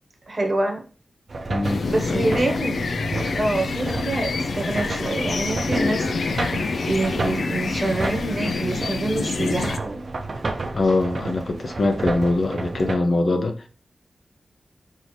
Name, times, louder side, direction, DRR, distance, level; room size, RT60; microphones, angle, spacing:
voice 1, 0.3-0.8 1.9-2.8 3.3-6.1 6.4-10.0, right 2 dB, 40° right, 1.0 m, -26 dB
sound 1, 1.3-13.0, right 3 dB, 55° right, 0.6 m, -32 dB
voice 2, 1.5-2.5 10.7-13.7, left 2 dB, 55° left, 0.7 m, -23 dB
sound 2, 1.6-9.8, left 4 dB, 85° left, 0.4 m, -27 dB
5.5 x 2.7 x 3.2 m
wide cardioid pair, 120°, 0 cm